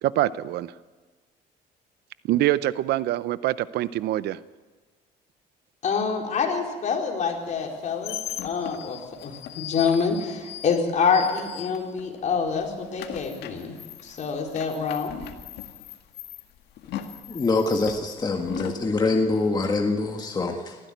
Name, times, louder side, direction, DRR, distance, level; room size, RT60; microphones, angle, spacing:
voice 1, 0.0-0.7 2.2-4.4, right 14 dB, 75° right, 17 dB, 0.7 m, -24 dB
voice 2, 5.8-13.8 14.0-15.2, left 5 dB, 45° left, 1 dB, 4.3 m, -26 dB
sound 1, 7.6-12.2 12.5-18.8, left 11 dB, 75° left, 1.9 m, -39 dB
voice 3, 17.3-20.8, left 3 dB, 25° left, 3 dB, 1.7 m, -24 dB
19.5 x 15.0 x 9.3 m, 1.4 s
cardioid pair, 110°, 17 cm